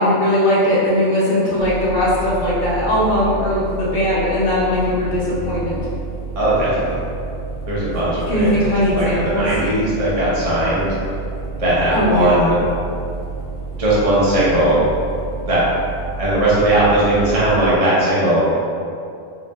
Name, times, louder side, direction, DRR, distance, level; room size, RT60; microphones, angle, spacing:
voice 1, 0.0-5.8 8.3-9.5 11.9-12.5, left 1 dB, 40° left, -8 dB, 1.0 m, -19 dB
sound 1, 1.6-17.8, right 3 dB, 80° right, 0.4 m, -30 dB
voice 2, 6.4-7.0 7.7-8.6 8.9-10.9 11.6-12.6 13.8-14.8 15.5-15.6 16.2-18.4, right 1 dB, 30° right, -9 dB, 0.9 m, -18 dB
3.2 x 2.9 x 3.3 m, 2.5 s
omnidirectional pair, 1.4 m